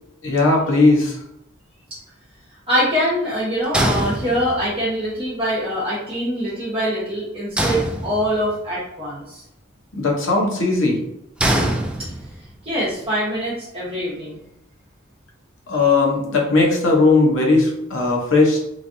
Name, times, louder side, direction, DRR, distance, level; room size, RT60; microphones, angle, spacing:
voice 1, 0.2-1.2 9.9-11.1 15.7-18.6, left 3 dB, 70° left, -1 dB, 0.9 m, -17 dB
voice 2, 2.7-9.4 12.6-14.4, equal, 30° right, -9 dB, 1.0 m, -23 dB
sound 1, 3.7-4.8 7.6-8.6 11.4-12.5, right 1 dB, 5° right, 0.3 m, -23 dB
3.2 x 2.4 x 2.6 m, 0.80 s
head